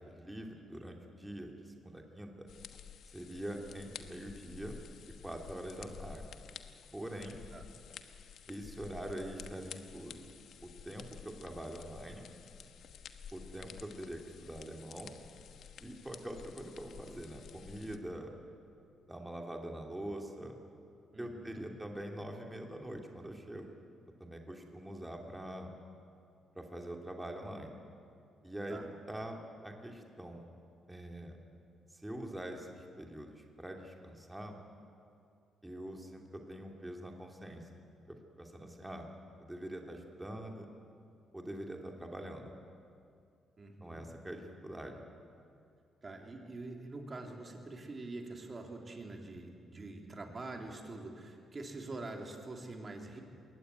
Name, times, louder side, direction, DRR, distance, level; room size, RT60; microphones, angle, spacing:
voice 1, 0.0-2.5 3.1-4.8 5.2-6.2 6.9-7.4 8.5-10.3 10.6-12.3 13.3-15.2 15.8-18.3 19.1-20.5 21.2-23.8 24.2-25.7 26.5-27.8 28.4-28.8 29.1-30.4 30.9-31.4 31.9-34.6 35.6-37.7 38.1-39.1 39.4-40.7 41.3-42.5 43.8-45.0, right 1 dB, 10° right, 1 dB, 2.6 m, -44 dB
sound 1, 2.5-18.0, left 7 dB, 70° left, 1.2 m, -51 dB
voice 2, 21.1-21.6 28.7-28.9 43.6-44.0 46.0-53.2, right 2 dB, 30° right, 2 dB, 3.4 m, -45 dB
22.0 x 17.0 x 9.4 m, 2.5 s
cardioid pair, 90°, 0 cm